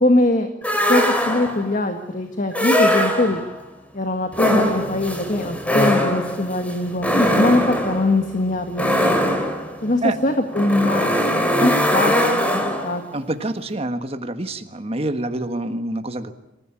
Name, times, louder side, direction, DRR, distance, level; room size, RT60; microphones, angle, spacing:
voice 1, 0.0-0.5 0.9-3.4 3.9-9.0 9.8-13.0, left 1 dB, 45° left, 6 dB, 1.7 m, -22 dB
sound 1, 0.6-1.7 2.5-3.6 4.3-13.0, equal, 10° left, 3.2 m, -21 dB
voice 2, 13.1-16.3, right 2 dB, 30° right, 8 dB, 1.5 m, -26 dB
26.0 x 15.5 x 9.9 m, 0.93 s
head